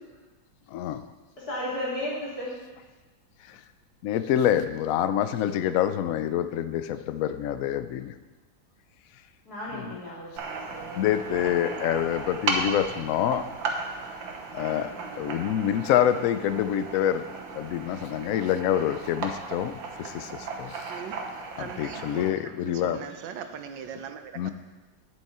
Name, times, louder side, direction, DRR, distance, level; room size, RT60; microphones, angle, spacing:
voice 1, 0.7-1.1 3.4-3.6 4.0-8.1 9.7-10.0 10.9-13.4 14.5-17.2 17.5-21.0 21.6-23.0 24.4-24.5, left 10 dB, 70° left, 11 dB, 0.8 m, -26 dB
voice 2, 1.4-2.5 9.5-11.3 11.6-11.7, left 1 dB, 50° left, -7 dB, 3.9 m, -35 dB
sound 1, 10.4-22.3, right 4 dB, 85° right, 1.9 m, -35 dB
voice 3, 21.6-24.5, right 7 dB, 70° right, 8 dB, 1.4 m, -40 dB
11.5 x 9.3 x 4.3 m, 1.2 s
omnidirectional pair, 2.1 m